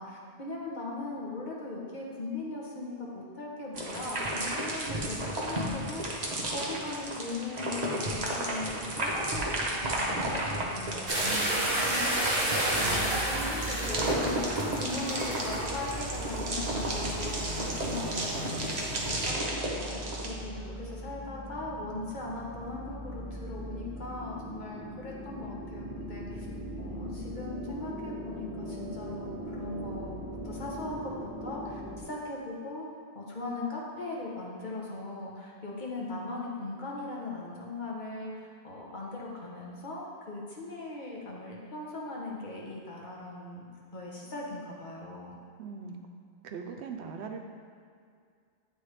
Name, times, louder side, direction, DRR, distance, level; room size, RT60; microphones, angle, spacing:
voice 1, 0.0-6.2 6.5-11.5 11.9-12.2 12.6-18.5 18.9-19.3 19.8-26.5 26.8-32.8 33.1-45.4, left 2 dB, 45° left, -4 dB, 1.1 m, -39 dB
sound 1, 3.7-20.3, right 1 dB, 40° right, 0.9 m, -33 dB
sound 2, 11.1-19.3, right 1 dB, 60° right, 1.3 m, -32 dB
voice 2, 11.3-11.9 45.6-46.1 46.4-47.4, right 5 dB, 80° right, 4 dB, 0.8 m, -40 dB
sound 3, 12.7-32.0, right 1 dB, 20° right, 1.4 m, -41 dB
9.3 x 3.4 x 3.3 m, 2.2 s
omnidirectional pair, 1.1 m